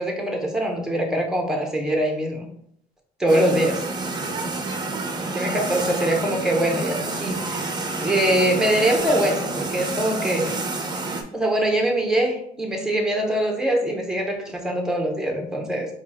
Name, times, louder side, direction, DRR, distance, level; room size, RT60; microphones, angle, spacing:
voice 1, 0.0-2.5 3.2-3.9 5.3-7.7 8.0-10.6 11.3-15.9, right 1 dB, 5° right, 2 dB, 1.0 m, -23 dB
sound 1, 3.3-11.2, right 3 dB, 25° right, 0.7 m, -29 dB
4.6 x 2.4 x 4.2 m, 0.68 s
cardioid pair, 110°, 17 cm